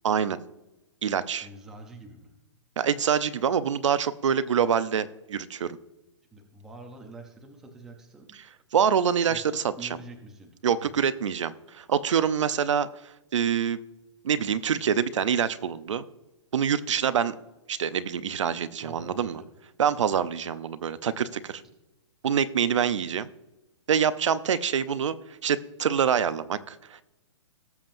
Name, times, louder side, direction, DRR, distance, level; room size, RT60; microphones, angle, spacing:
voice 1, 0.0-0.4 1.0-1.5 2.8-5.8 8.7-9.9 10.6-13.8 14.2-16.0 16.5-17.4 17.7-19.4 19.8-21.6 22.2-23.3 23.9-27.0, right 8 dB, 75° right, 13 dB, 0.7 m, -26 dB
voice 2, 1.4-2.4 6.3-8.4 9.3-10.5 10.8-10.9 18.8-19.5, right 2 dB, 5° right, 2 dB, 0.5 m, -46 dB
18.5 x 7.3 x 2.6 m, 0.99 s
hypercardioid pair, 180°, 16 cm